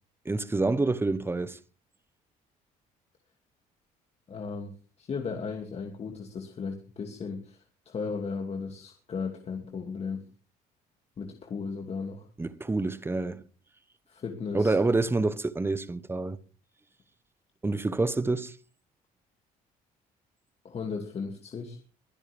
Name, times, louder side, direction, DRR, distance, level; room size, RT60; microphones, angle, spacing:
voice 1, 0.2-1.6 12.4-13.4 14.5-16.4 17.6-18.6, right 3 dB, 15° right, 1.1 m, -27 dB
voice 2, 4.3-10.2 11.2-12.3 14.1-14.8 20.6-21.8, left 5 dB, 40° left, 2.5 m, -36 dB
22.5 x 11.0 x 3.5 m
cardioid pair, 95°, 16 cm